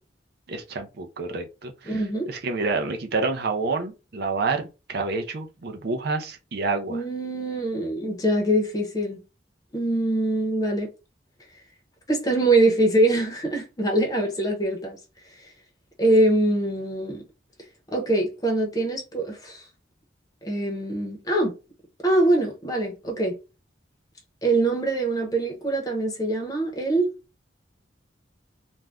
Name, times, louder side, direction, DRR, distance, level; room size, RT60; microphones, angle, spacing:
voice 1, 0.5-7.0, right 3 dB, 60° right, 0.5 m, -28 dB
voice 2, 1.9-2.3 6.9-9.2 9.7-10.9 12.1-15.0 16.0-17.2 17.9-19.6 20.4-21.5 22.0-23.3 24.4-27.1, right 1 dB, 20° left, 0.7 m, -23 dB
2.5 x 2.2 x 3.3 m
head